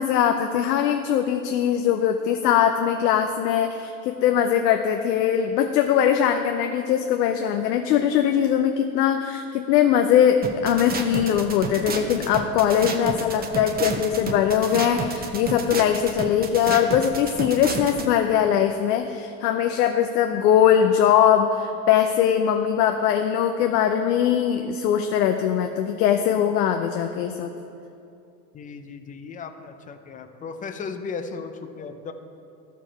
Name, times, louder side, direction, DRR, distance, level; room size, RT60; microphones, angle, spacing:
voice 1, 0.0-27.5, left 9 dB, 80° left, 6 dB, 0.7 m, -21 dB
sound 1, 10.4-18.1, right 4 dB, 20° right, 0.7 m, -30 dB
voice 2, 28.5-32.1, left 5 dB, 15° left, 8 dB, 0.4 m, -36 dB
13.0 x 5.1 x 4.4 m, 2.6 s
hypercardioid pair, 95°, 49 cm